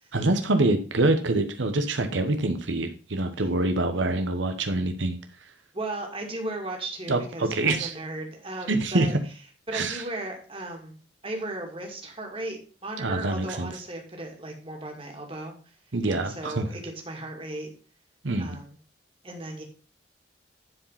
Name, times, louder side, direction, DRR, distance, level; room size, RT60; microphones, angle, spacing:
voice 1, 0.1-5.2 7.1-7.9 8.7-9.1 9.7-10.0 13.0-13.7 15.9-16.7 18.2-18.6, right 2 dB, 85° right, 7 dB, 1.1 m, -25 dB
voice 2, 5.7-9.1 9.7-15.5 16.1-17.7 18.4-18.8 19.2-19.6, right 2 dB, 30° right, 2 dB, 2.4 m, -36 dB
11.0 x 5.0 x 5.7 m, 0.39 s
head